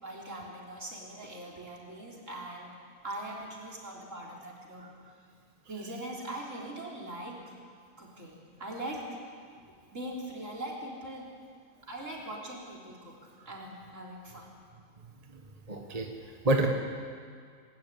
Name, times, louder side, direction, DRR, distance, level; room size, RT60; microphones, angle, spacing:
voice 1, 0.0-2.7 3.0-4.8 5.7-7.5 8.0-9.1 9.9-11.3 11.8-13.2 13.5-14.6, right 1 dB, 55° right, -2 dB, 4.2 m, -41 dB
voice 2, 15.7-16.7, right 1 dB, 25° right, 2 dB, 1.4 m, -28 dB
25.0 x 12.5 x 9.5 m, 2.1 s
omnidirectional pair, 1.5 m